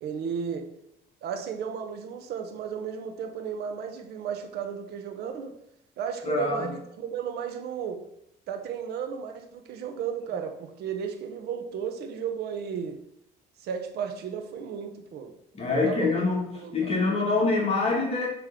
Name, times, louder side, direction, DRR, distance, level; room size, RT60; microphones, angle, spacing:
voice 1, 0.0-0.7 1.2-5.6 6.0-8.0 8.5-13.0 13.6-15.3 15.7-16.2 16.5-17.0, right 7 dB, 75° right, 5 dB, 1.1 m, -34 dB
voice 2, 6.3-6.7 15.5-18.3, left 3 dB, 35° left, -2 dB, 1.8 m, -25 dB
6.9 x 3.3 x 5.8 m, 0.79 s
cardioid pair, 110°, 17 cm